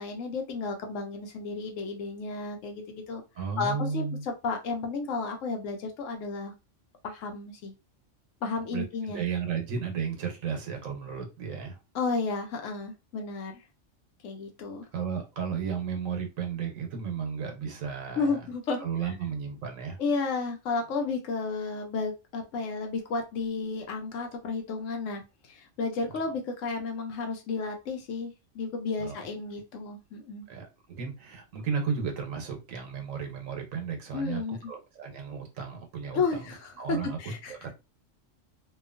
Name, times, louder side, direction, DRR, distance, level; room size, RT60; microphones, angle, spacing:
voice 1, 0.0-3.2 3.6-6.5 7.0-7.7 8.4-9.2 11.9-13.6 14.2-14.8 18.2-18.8 20.0-30.5 34.1-34.7 36.1-37.5, left 4 dB, 75° left, 3 dB, 1.0 m, -32 dB
voice 2, 3.4-4.2 8.7-11.8 14.9-18.4 18.8-20.0 29.0-29.3 30.5-36.2 36.8-37.2 37.6-37.7, right 6 dB, 85° right, 4 dB, 1.2 m, -34 dB
2.8 x 2.4 x 2.4 m, 0.26 s
omnidirectional pair, 1.3 m